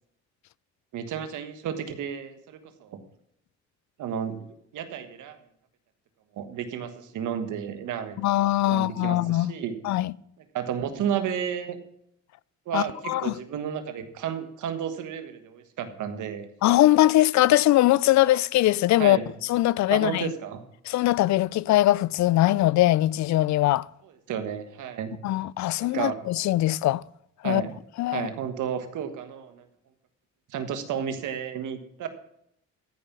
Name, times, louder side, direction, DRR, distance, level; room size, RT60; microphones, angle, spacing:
voice 1, 0.9-3.0 4.0-5.4 6.3-8.3 8.7-9.8 10.5-11.8 12.7-16.5 19.0-19.3 19.9-20.6 24.3-25.1 25.8-26.2 27.4-27.7 28.1-29.7 30.5-32.1, right 8 dB, 80° right, 1.5 m, -32 dB
voice 2, 8.2-9.5 9.8-10.1 12.7-13.3 16.6-19.2 19.4-20.3 20.9-23.9 25.2-27.0 27.4-27.6 28.0-28.3, left 15 dB, 65° left, 0.4 m, -21 dB
14.0 x 5.2 x 7.2 m
cardioid pair, 90°, 30 cm